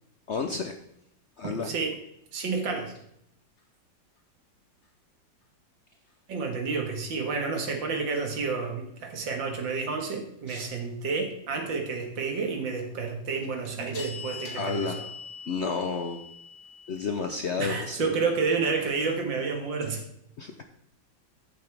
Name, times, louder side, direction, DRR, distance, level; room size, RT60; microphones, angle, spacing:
voice 1, 0.3-0.7 1.4-1.7 10.5-10.7 14.5-15.0 15.5-16.2 16.9-18.1 20.4-20.6, left 5 dB, 65° left, 5 dB, 0.7 m, -31 dB
voice 2, 1.6-1.9 2.3-2.9 6.3-15.1 17.6-20.0, right 4 dB, 85° right, 4 dB, 2.3 m, -30 dB
sound 1, 3.0-3.1 13.3-17.3, left 5 dB, 85° left, 2.3 m, -42 dB
13.0 x 7.1 x 3.4 m, 0.73 s
omnidirectional pair, 2.0 m